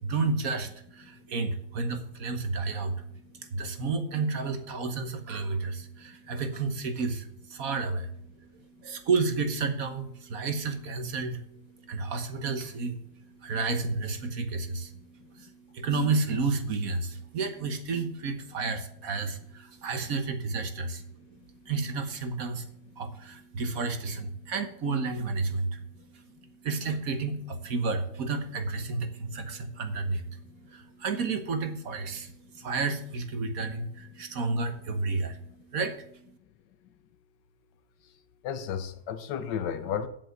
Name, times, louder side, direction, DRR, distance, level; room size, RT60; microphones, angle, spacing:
voice 1, 0.0-3.1 3.3-21.4 21.6-25.8 26.1-30.4 30.7-36.3, right 4 dB, 55° right, 1.5 m, -31 dB
voice 2, 38.4-40.1, left 8 dB, 90° left, 1.5 m, -33 dB
7.7 x 7.6 x 8.0 m
omnidirectional pair, 1.9 m